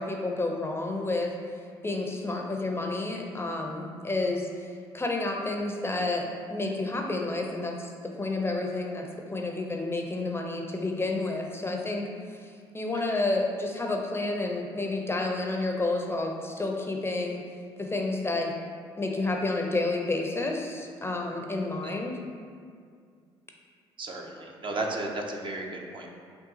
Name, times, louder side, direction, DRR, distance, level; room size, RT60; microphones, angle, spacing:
voice 1, 0.0-1.3 1.8-17.4 17.8-18.5 19.0-22.2, left 2 dB, 20° left, 1 dB, 0.5 m, -30 dB
voice 2, 24.0-26.1, right 2 dB, 40° right, 1 dB, 0.6 m, -34 dB
5.4 x 2.3 x 2.7 m, 2.2 s
hypercardioid pair, 55°, 13 cm